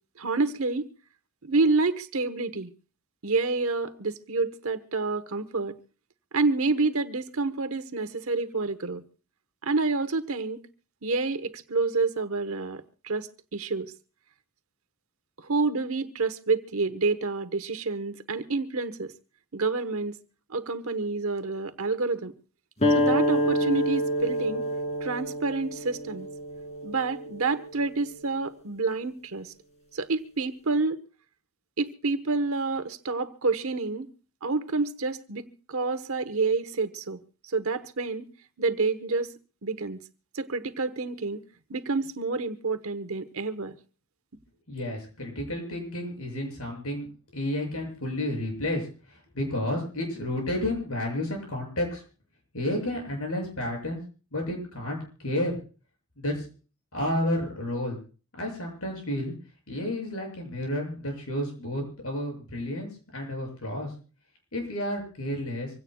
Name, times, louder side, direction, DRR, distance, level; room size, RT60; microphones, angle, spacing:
voice 1, 0.2-0.9 1.4-2.7 3.2-5.8 6.3-9.0 9.6-10.6 11.0-13.9 15.4-19.1 19.5-20.2 20.5-22.3 22.9-24.6 25.0-26.3 26.8-29.5 29.9-31.0 31.8-34.1 34.4-38.3 38.6-39.3 39.6-40.0 40.3-41.4 41.7-43.8, right 3 dB, 65° right, 1.2 m, -28 dB
sound 1, 22.8-27.9, equal, 30° left, 2.4 m, -27 dB
voice 2, 44.7-47.1 47.3-52.0 52.5-54.0 54.3-55.6 56.2-56.4 56.9-58.0 58.4-59.3 59.7-63.9 64.5-65.7, left 1 dB, 75° left, 7.2 m, -31 dB
26.0 x 16.5 x 2.3 m
head